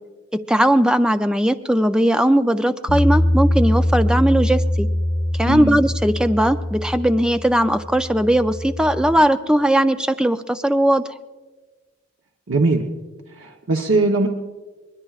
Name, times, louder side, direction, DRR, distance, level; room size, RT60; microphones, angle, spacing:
voice 1, 0.3-4.9 5.4-11.0, right 1 dB, 5° right, 9 dB, 0.4 m, -18 dB
Bass guitar, 2.9-9.1, left 1 dB, 50° left, 5.2 m, -22 dB
voice 2, 5.5-5.8 12.5-12.8 13.3-14.3, right 2 dB, 85° right, 2 dB, 0.9 m, -20 dB
24.5 x 20.0 x 2.4 m, 1.3 s
head